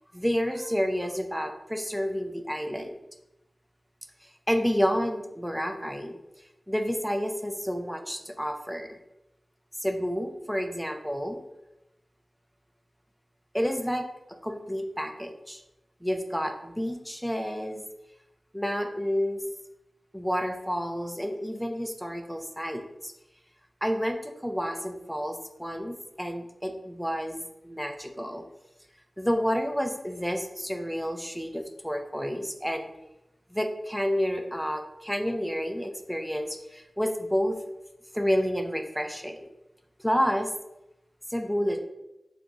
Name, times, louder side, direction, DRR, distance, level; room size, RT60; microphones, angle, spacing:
voice 1, 0.1-2.9 4.5-6.2 6.7-9.0 9.8-11.4 13.5-14.1 14.4-15.6 16.0-17.8 18.5-19.4 20.1-23.1 23.8-28.4 29.2-32.9 33.5-37.6 38.1-39.5 40.0-40.5 41.3-41.8, equal, ahead, 4 dB, 0.5 m, -30 dB
3.9 x 3.5 x 3.6 m, 0.90 s
wide cardioid pair, 90°, 0 cm